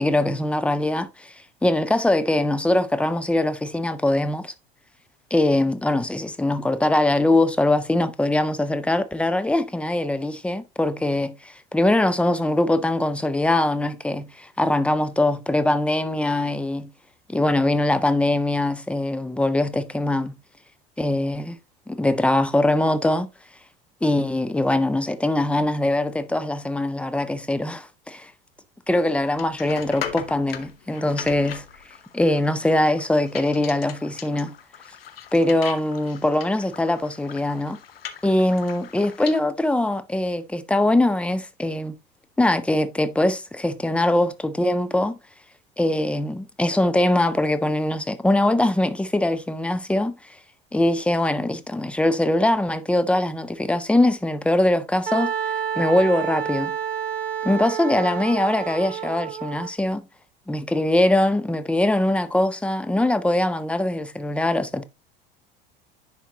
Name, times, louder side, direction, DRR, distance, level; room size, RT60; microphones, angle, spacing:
voice 1, 0.0-1.3 1.6-4.5 5.3-16.9 17.3-20.4 21.0-21.6 21.9-23.3 24.0-28.3 28.9-31.6 32.1-34.5 35.3-37.8 38.2-41.9 42.4-45.2 45.8-50.2 50.7-55.3 55.8-56.7 57.4-60.0 60.5-64.8, left 1 dB, 5° left, 0.7 m, -22 dB
sound 1, 28.9-39.4, left 8 dB, 80° left, 0.8 m, -39 dB
Wind instrument woodwind instrument, 55.1-59.7, right 9 dB, 85° right, 0.7 m, -29 dB
10.0 x 4.3 x 2.8 m
figure-of-eight pair, 75°, 29 cm